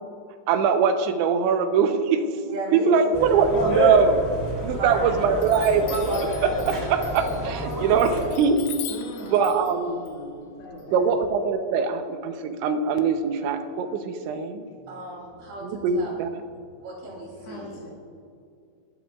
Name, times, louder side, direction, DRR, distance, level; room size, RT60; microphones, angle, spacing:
voice 1, 0.5-2.2 2.7-4.2 4.6-5.8 6.2-8.6 9.3-10.0 10.9-14.7 15.6-16.4, right 6 dB, 90° right, 7 dB, 3.2 m, -22 dB
voice 2, 2.5-3.4 3.7-3.8 4.7-5.7 14.9-16.1 16.8-17.9, right 1 dB, 60° right, -3 dB, 4.6 m, -35 dB
sound 1, 3.1-8.2, equal, 10° right, 1.3 m, -28 dB
Chime, 4.5-5.0 5.4-11.3, left 11 dB, 80° left, 2.0 m, -41 dB
voice 3, 7.7-8.5 8.9-11.1 14.8-15.0 15.3-15.7 17.3-17.9, left 1 dB, 40° left, -5 dB, 2.0 m, -41 dB
20.0 x 12.5 x 2.4 m, 2.4 s
omnidirectional pair, 5.2 m